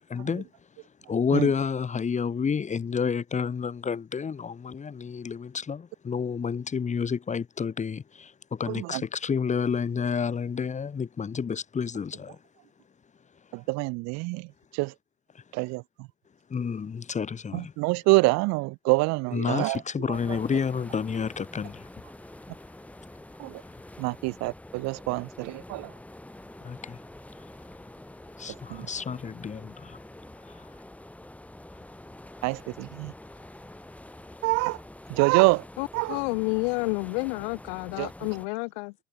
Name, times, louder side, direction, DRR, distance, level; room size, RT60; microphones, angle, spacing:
voice 1, 0.1-0.5 1.1-12.4 16.5-17.7 19.3-21.9 26.6-27.0 28.4-29.7, left 6 dB, 20° left, 2.0 m, -30 dB
voice 2, 8.7-9.0 13.5-14.5 14.7-14.9 15.5-16.1 17.5-19.8 20.1-20.4 23.4-23.6 24.0-25.9 28.7-28.9 32.4-33.1 34.4-34.8 35.1-35.6 35.9-36.2 38.0-38.1, right 26 dB, 50° right, 1.3 m, -26 dB
sound 1, 20.1-38.5, left 1 dB, 5° left, 1.9 m, -46 dB
voice 3, 35.8-38.9, left 32 dB, 55° left, 0.6 m, -30 dB
hypercardioid pair, 80°, 34 cm